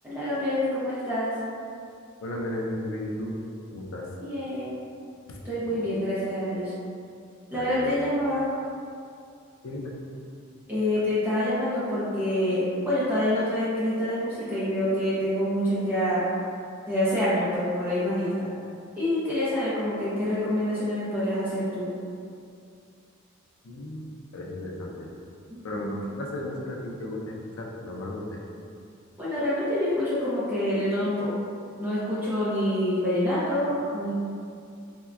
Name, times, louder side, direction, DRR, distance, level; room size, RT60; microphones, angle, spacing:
voice 1, 0.0-1.3 4.2-4.8 5.4-6.7 7.5-8.5 10.7-16.3 16.9-18.5 19.0-21.9 25.5-26.0 29.2-31.3 31.8-34.1, left 1 dB, 10° right, -11 dB, 0.5 m, -26 dB
voice 2, 2.2-3.3 3.7-4.1 5.3-5.4 5.6-6.0 7.5-7.9 9.6-9.9 23.6-25.1 25.6-28.4, left 1 dB, 70° left, -2 dB, 0.4 m, -35 dB
3.6 x 2.1 x 2.3 m, 2.5 s
head